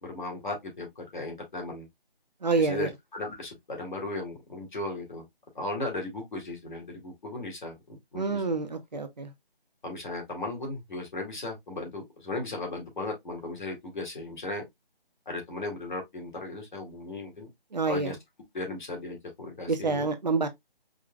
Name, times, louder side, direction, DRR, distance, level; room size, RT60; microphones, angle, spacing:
voice 1, 0.0-1.9 2.6-5.3 5.5-8.6 9.8-14.7 15.3-17.5 17.9-18.2 18.5-20.1, left 2 dB, 50° left, 2.3 m, -36 dB
voice 2, 2.4-2.9 8.1-9.3 17.7-18.1 19.8-20.5, right 3 dB, 45° right, 0.8 m, -27 dB
5.0 x 2.9 x 2.2 m
figure-of-eight pair, 170°, 30 cm